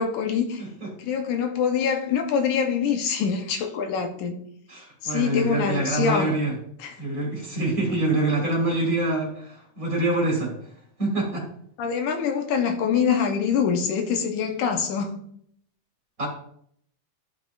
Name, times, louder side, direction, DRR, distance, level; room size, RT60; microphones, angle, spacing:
voice 1, 0.0-0.6 1.0-4.4 5.0-6.3 6.8-7.0 11.8-15.2, left 6 dB, 80° left, 4 dB, 2.3 m, -24 dB
voice 2, 0.6-0.9 4.7-6.5 7.0-10.5 11.0-11.5 16.2-16.3, right 2 dB, 30° right, -2 dB, 2.1 m, -25 dB
13.0 x 5.9 x 2.5 m, 0.67 s
omnidirectional pair, 3.6 m